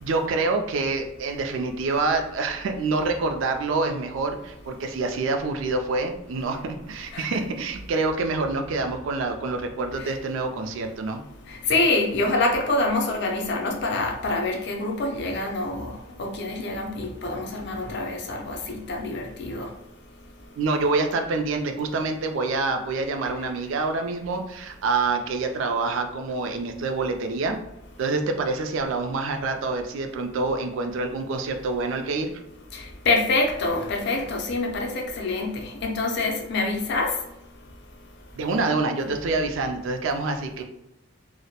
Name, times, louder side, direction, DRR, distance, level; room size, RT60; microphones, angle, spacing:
voice 1, 0.0-11.2 20.6-27.6 28.0-32.4 38.4-40.6, right 3 dB, 65° right, 6 dB, 0.3 m, -26 dB
voice 2, 11.7-15.9 16.2-19.7 33.1-37.1, left 2 dB, 55° left, 1 dB, 0.4 m, -26 dB
2.2 x 2.0 x 2.8 m, 0.89 s
head